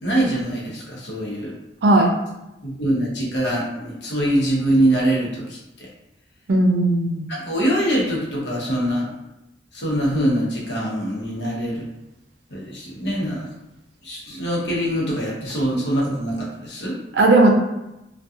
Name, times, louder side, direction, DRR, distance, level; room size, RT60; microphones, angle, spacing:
voice 1, 0.0-1.5 2.6-5.9 7.3-9.1 9.7-11.9 12.5-13.5 14.0-17.0, right 1 dB, 80° left, -4 dB, 0.8 m, -23 dB
voice 2, 6.5-7.3 17.1-17.5, right 2 dB, 70° right, 1 dB, 0.5 m, -16 dB
2.7 x 2.2 x 2.4 m, 0.93 s
head